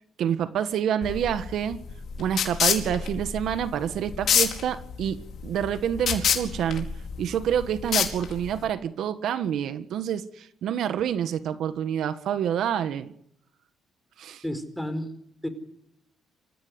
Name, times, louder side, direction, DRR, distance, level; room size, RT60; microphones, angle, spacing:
voice 1, 0.2-1.8 2.2-5.2 5.4-6.9 7.2-13.1 14.2-14.4, right 9 dB, 75° right, 11 dB, 1.5 m, -27 dB
sound 1, 1.0-8.7, left 8 dB, 60° left, 4.6 m, -28 dB
voice 2, 14.4-15.5, equal, 5° left, 10 dB, 4.5 m, -32 dB
27.0 x 15.5 x 9.7 m, 0.75 s
cardioid pair, 90°, 0 cm